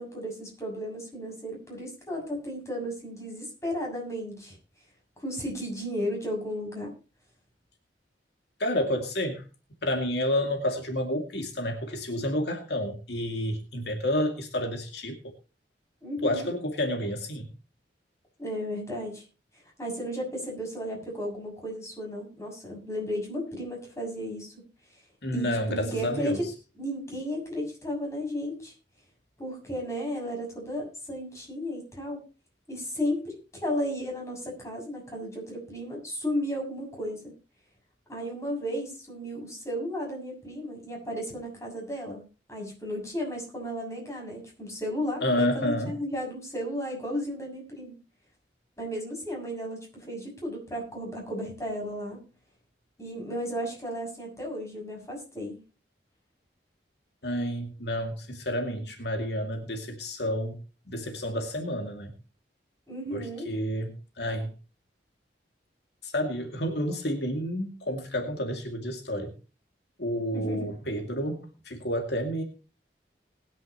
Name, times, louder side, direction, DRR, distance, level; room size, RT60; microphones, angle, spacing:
voice 1, 0.0-4.6 5.2-6.9 16.0-16.5 18.4-19.2 19.5-24.5 24.9-25.0 25.3-26.4 26.7-28.7 29.4-32.2 32.7-37.3 38.1-47.9 48.8-52.2 53.0-55.6 62.9-63.5 70.3-70.7, equal, 15° left, -1 dB, 6.8 m, -34 dB
voice 2, 8.6-9.4 9.8-15.3 16.2-17.5 25.2-26.4 45.2-46.0 57.2-60.6 60.9-62.1 63.1-64.5 66.0-69.3 70.0-72.4, equal, 70° left, 3 dB, 2.4 m, -30 dB
20.5 x 10.0 x 3.0 m, 0.32 s
head